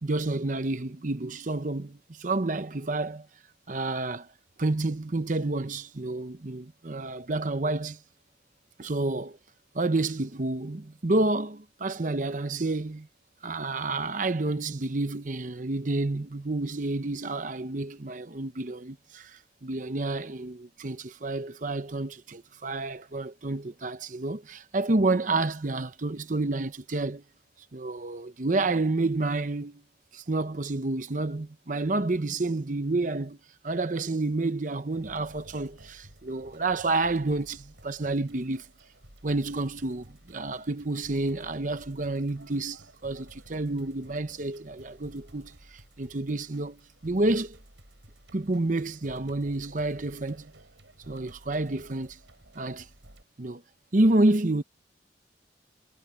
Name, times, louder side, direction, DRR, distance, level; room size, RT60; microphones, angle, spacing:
voice 1, 0.0-3.3 3.7-4.3 4.6-8.0 8.8-9.4 9.7-13.1 13.4-27.2 27.7-29.8 30.1-33.4 33.6-38.7 39.2-47.6 48.3-50.5 51.1-52.2 52.5-52.9 53.4-53.6 53.9-54.6, right 2 dB, 45° right, 0.8 m, -29 dB
sound 1, 34.9-53.2, right 1 dB, 90° right, 5.7 m, -53 dB
head